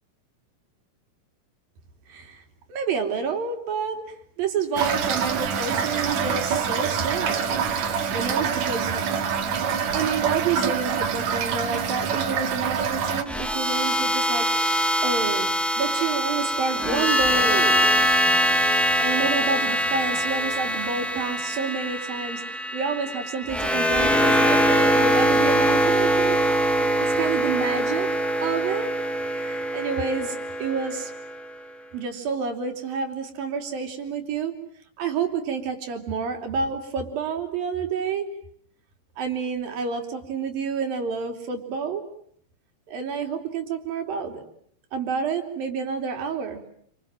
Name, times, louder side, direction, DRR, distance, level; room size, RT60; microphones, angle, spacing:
voice 1, 2.1-2.4 2.7-4.0 4.4-7.7 8.1-9.0 9.9-14.5 15.0-15.5 15.8-17.9 19.0-26.4 27.0-28.1 28.4-28.9 29.3-31.1 31.9-34.6 35.0-38.3 39.2-42.0 42.9-44.4 44.9-46.6, right 5 dB, 90° right, 4 dB, 5.0 m, -29 dB
Toilet flush / Fill (with liquid), 4.8-13.2, right 6 dB, 60° right, 2.9 m, -25 dB
sound 1, 13.3-31.4, equal, ahead, 0.9 m, -23 dB
28.5 x 26.5 x 7.6 m, 0.68 s
omnidirectional pair, 4.0 m